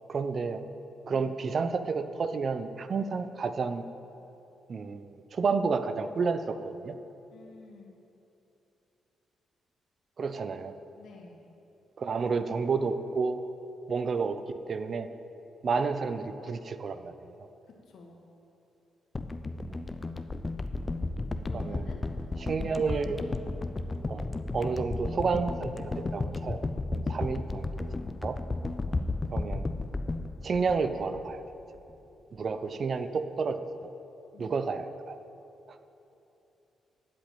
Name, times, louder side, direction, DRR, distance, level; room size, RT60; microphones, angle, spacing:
voice 1, 0.1-0.6 1.1-3.8 4.7-6.9 10.2-10.7 12.0-13.4 13.9-15.1 15.6-17.5 19.7-19.9 21.5-21.9 22.4-23.2 24.1-24.2 24.5-27.7 28.2-28.4 29.3-29.7 30.4-31.4 32.3-33.6 34.4-35.2, right 5 dB, 50° right, 10 dB, 0.7 m, -30 dB
voice 2, 7.3-7.9 11.0-11.4 17.9-18.2 21.5-22.0 22.6-23.3 27.0-27.3 28.9-29.0 34.3-34.5, left 4 dB, 75° left, 0 dB, 1.9 m, -50 dB
sound 1, 19.1-31.5 31.8-31.9, left 2 dB, 30° left, 0.6 m, -34 dB
13.0 x 5.2 x 9.0 m, 2.9 s
supercardioid pair, 60°, 0 cm